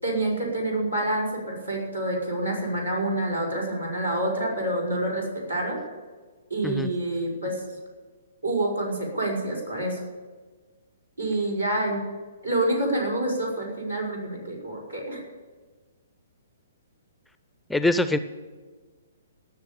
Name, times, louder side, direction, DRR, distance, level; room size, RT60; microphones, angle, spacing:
voice 1, 0.0-5.8 6.5-7.6 8.4-10.0 11.2-12.0 12.4-15.2, right 1 dB, 90° right, -3 dB, 5.7 m, -27 dB
voice 2, 17.7-18.2, left 2 dB, 5° left, 11 dB, 0.5 m, -23 dB
18.0 x 7.0 x 8.9 m, 1.4 s
figure-of-eight pair, 120°, 0 cm